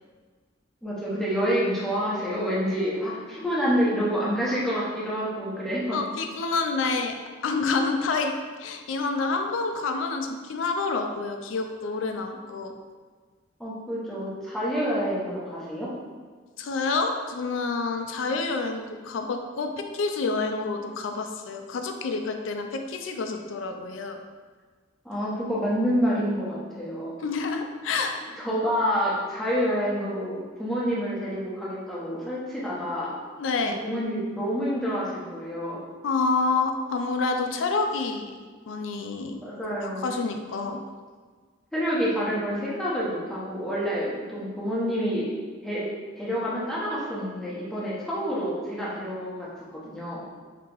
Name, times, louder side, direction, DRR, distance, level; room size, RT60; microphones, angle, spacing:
voice 1, 0.8-6.0 13.6-15.9 25.0-27.1 28.4-33.1 33.8-35.8 39.4-40.1 41.7-45.3 45.6-45.9 46.2-49.5 49.8-50.2, equal, ahead, -7 dB, 0.8 m, -28 dB
voice 2, 5.9-7.2 7.4-12.7 16.6-24.2 27.2-28.1 33.4-33.7 36.0-38.3 38.7-39.4 39.8-40.8, left 4 dB, 90° left, 5 dB, 0.4 m, -28 dB
2.9 x 2.8 x 3.6 m, 1.5 s
head